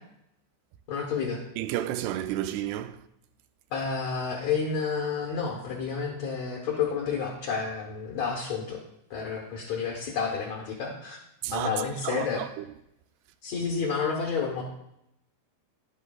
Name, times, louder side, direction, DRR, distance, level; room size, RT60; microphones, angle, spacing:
voice 1, 0.9-1.4 3.7-8.8 9.1-11.2 11.5-12.4 13.4-14.6, left 5 dB, 70° left, 1.7 m, -30 dB
voice 2, 1.6-3.0 11.4-11.7 12.0-12.7, right 12 dB, 85° right, 2.6 m, -31 dB
11.0 x 10.5 x 2.3 m
omnidirectional pair, 4.7 m